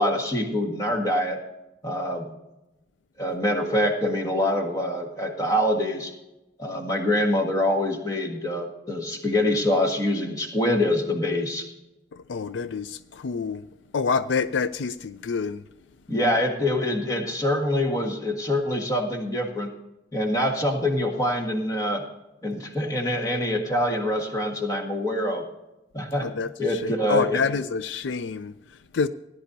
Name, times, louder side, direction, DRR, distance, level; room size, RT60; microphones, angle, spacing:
voice 1, 0.0-1.4 1.8-2.3 3.2-6.1 6.6-11.7 16.1-19.7 20.1-22.0 22.4-25.4 25.9-26.3 26.6-27.4, left 1 dB, 20° left, 1.5 m, -25 dB
voice 2, 12.1-13.6 13.9-15.6 26.2-28.5 28.9-29.1, left 5 dB, 75° left, 0.4 m, -27 dB
18.0 x 10.5 x 2.7 m
head